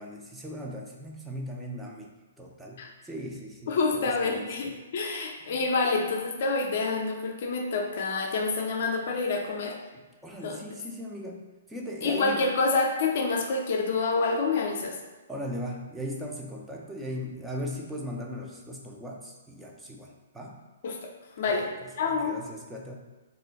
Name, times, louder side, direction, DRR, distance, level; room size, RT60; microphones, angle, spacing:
voice 1, 0.0-4.7 5.5-5.6 9.9-12.5 15.3-20.6 21.4-22.9, equal, 5° right, -1 dB, 0.4 m, -39 dB
voice 2, 3.7-9.8 10.4-10.6 12.0-15.0 20.8-21.0 21.4-21.7 22.0-22.4, left 3 dB, 55° left, 2 dB, 0.4 m, -27 dB
2.4 x 2.2 x 3.9 m, 1.2 s
figure-of-eight pair, 120°, 0 cm